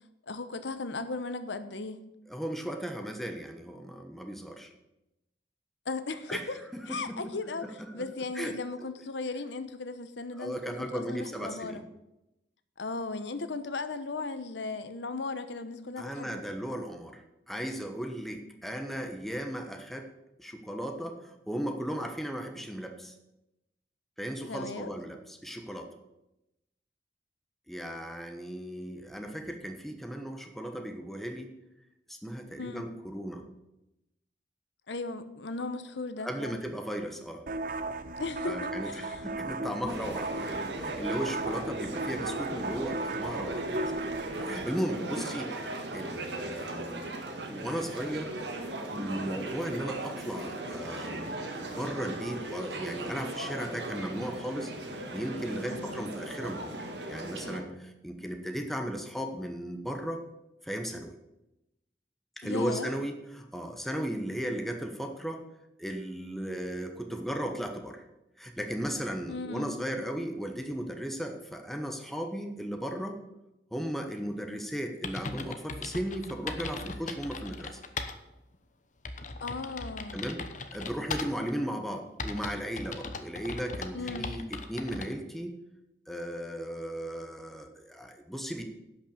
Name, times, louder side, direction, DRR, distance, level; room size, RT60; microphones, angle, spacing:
voice 1, 0.3-2.0 5.8-6.6 6.9-11.8 12.8-16.4 24.4-24.9 32.6-32.9 34.9-36.6 38.2-39.2 45.2-45.3 55.7-56.1 62.4-63.0 69.3-69.8 79.4-80.2 83.9-84.3, left 3 dB, 80° left, 11 dB, 0.9 m, -37 dB
voice 2, 2.3-4.7 6.3-6.4 6.7-7.2 8.0-8.1 8.3-8.5 10.3-11.8 16.0-20.1 20.4-23.1 24.2-25.9 27.7-31.5 32.1-33.4 36.2-37.4 38.4-43.9 44.3-47.1 47.5-48.3 48.9-54.7 55.1-56.8 57.1-60.2 60.6-61.2 62.4-65.4 65.8-68.0 68.4-73.2 73.7-77.8 80.1-80.4 80.7-85.6 86.1-88.6, equal, ahead, 4 dB, 1.1 m, -36 dB
sound 1, 37.5-44.7, right 3 dB, 50° right, 0.6 m, -36 dB
sound 2, 39.9-57.6, right 1 dB, 75° right, 1.7 m, -37 dB
sound 3, 74.6-74.7 75.0-78.2 78.5-78.6 79.0-81.5 82.2-85.1, left 3 dB, 45° left, 0.9 m, -38 dB
11.0 x 5.9 x 7.3 m, 0.91 s
head